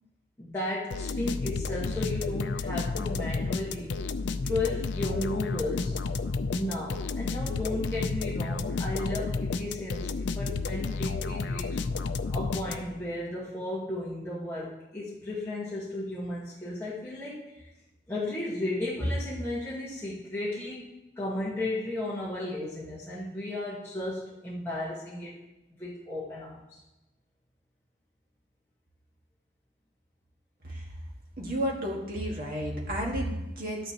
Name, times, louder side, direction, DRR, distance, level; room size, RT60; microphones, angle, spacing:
voice 1, 0.4-4.0 4.4-6.0 6.5-11.8 12.3-17.7 18.1-20.9 21.2-25.3 25.7-26.8, left 1 dB, 15° left, -8 dB, 1.4 m, -34 dB
sound 1, 0.9-13.1, left 4 dB, 75° left, 0.4 m, -31 dB
voice 2, 31.4-33.9, equal, 50° right, -1 dB, 1.7 m, -32 dB
11.5 x 9.1 x 2.9 m, 0.98 s
head